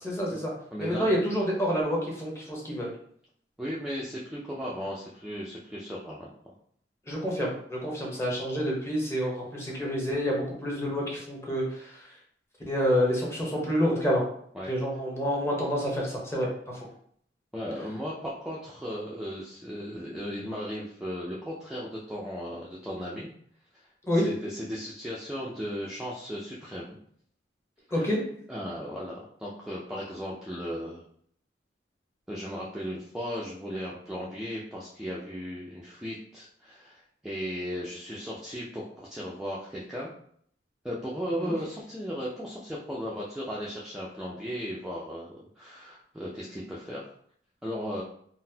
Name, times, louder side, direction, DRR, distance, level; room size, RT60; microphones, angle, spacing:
voice 1, 0.0-0.5 0.8-2.9 7.1-11.9 12.7-14.2 14.7-16.8 24.1-24.2 27.9-28.2 41.4-41.5, equal, 15° left, -3 dB, 0.8 m, -28 dB
voice 2, 0.7-1.2 3.6-6.5 14.5-14.7 17.5-23.3 24.1-27.0 27.9-28.1 28.5-31.0 32.3-40.1 40.8-47.0 47.6-48.0, equal, 5° right, -6 dB, 0.4 m, -36 dB
3.9 x 2.0 x 2.7 m, 0.63 s
head